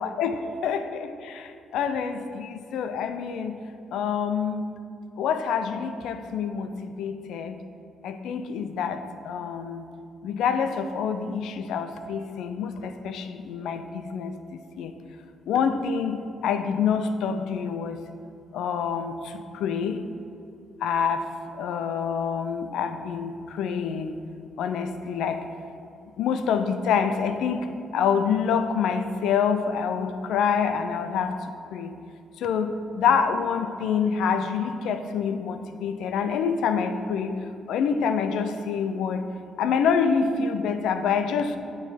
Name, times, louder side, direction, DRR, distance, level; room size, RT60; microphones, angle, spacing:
voice 1, 0.0-3.6 3.9-4.7 5.2-7.6 8.0-9.8 10.2-14.9 15.5-18.0 18.5-20.0 20.8-21.2 21.5-24.2 24.6-25.4 26.2-31.3 31.7-31.9 32.4-37.3 37.7-39.2 39.6-41.6, left 6 dB, 80° left, 9 dB, 0.4 m, -26 dB
8.7 x 3.1 x 5.0 m, 2.5 s
cardioid pair, 90°, 0 cm